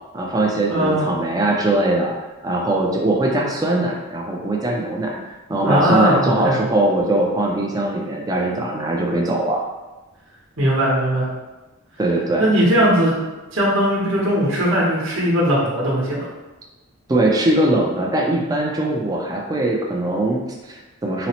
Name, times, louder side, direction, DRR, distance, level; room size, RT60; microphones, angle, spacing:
voice 1, 0.1-2.1 2.4-5.1 5.5-9.6 12.0-12.4 17.1-21.3, right 1 dB, 15° right, -1 dB, 0.3 m, -21 dB
voice 2, 0.7-1.0 5.6-6.6 10.6-11.3 12.4-13.1 13.5-16.3, equal, 60° right, -6 dB, 0.9 m, -18 dB
4.0 x 2.0 x 2.8 m, 1.1 s
head